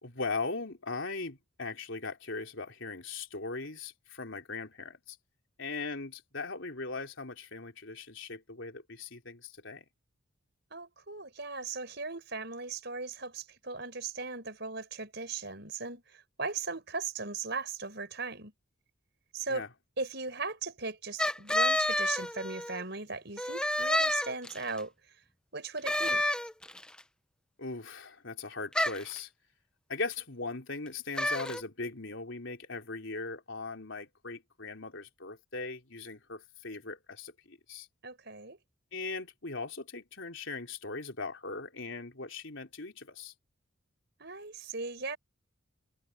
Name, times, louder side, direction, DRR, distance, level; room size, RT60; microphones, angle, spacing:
voice 1, 0.0-5.2 5.6-9.8 19.5-19.7 27.6-29.3 29.9-37.9 38.9-43.3, left 3 dB, 65° left, 3.7 m, -39 dB
voice 2, 10.7-18.5 19.3-19.6 20.0-24.9 25.5-26.3 38.0-38.6 44.2-45.2, right 4 dB, 55° right, 6.1 m, -38 dB
sound 1, 21.2-22.8 23.4-24.8 25.9-26.9 28.7-29.2 31.2-31.6, left 1 dB, 5° left, 0.8 m, -29 dB
head